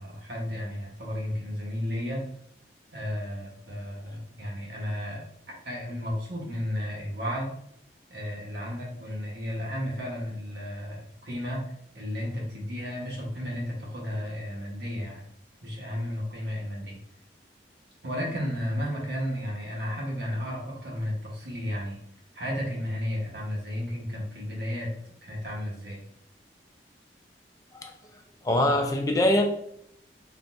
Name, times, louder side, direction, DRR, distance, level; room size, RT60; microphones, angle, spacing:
voice 1, 0.0-2.2 2.9-7.5 8.1-11.6 11.9-15.2 15.6-17.0 18.0-22.0 22.3-24.9 25.2-26.0, equal, 65° right, 1.1 m, -33 dB
voice 2, 28.4-29.4, left 1 dB, 20° left, 0.3 m, -23 dB
3.8 x 2.5 x 2.2 m
head